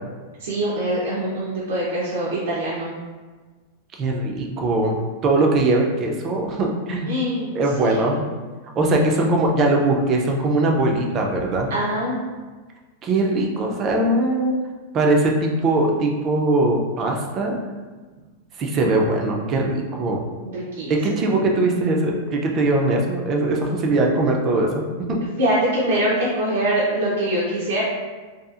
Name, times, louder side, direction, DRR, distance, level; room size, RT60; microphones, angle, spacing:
voice 1, 0.4-2.9 7.1-7.5 7.9-8.0 11.7-12.2 20.5-21.3 25.3-27.8, right 1 dB, 80° right, -6 dB, 0.5 m, -23 dB
voice 2, 4.0-7.1 7.5-8.2 8.8-11.7 13.0-14.5 14.9-17.6 18.6-20.2 20.9-25.2, right 2 dB, 25° right, 1 dB, 0.3 m, -21 dB
2.6 x 2.3 x 2.4 m, 1.3 s
supercardioid pair, 165°, 0 cm